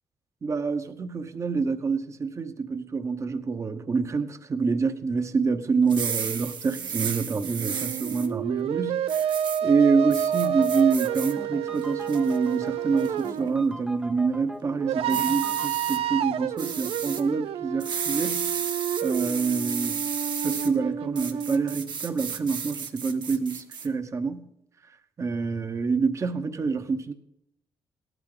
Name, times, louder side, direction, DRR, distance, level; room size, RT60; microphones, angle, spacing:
voice 1, 0.4-9.3 9.6-18.5 19.0-20.0 20.4-24.4 25.2-27.1, right 4 dB, 30° right, 1.0 m, -26 dB
sound 1, 5.8-8.3 9.1-9.6 10.1-11.3 11.8-12.4 13.0-13.3 15.1-16.0 16.6-17.2 17.8-20.7 21.2-23.9, right 6 dB, 50° right, 1.4 m, -33 dB
sound 2, 7.6-13.6 14.8-21.8, right 10 dB, 80° right, 0.6 m, -29 dB
sound 3, 10.3-15.7, right 1 dB, 5° right, 0.6 m, -42 dB
18.5 x 12.5 x 3.9 m
wide cardioid pair, 155°, 10 cm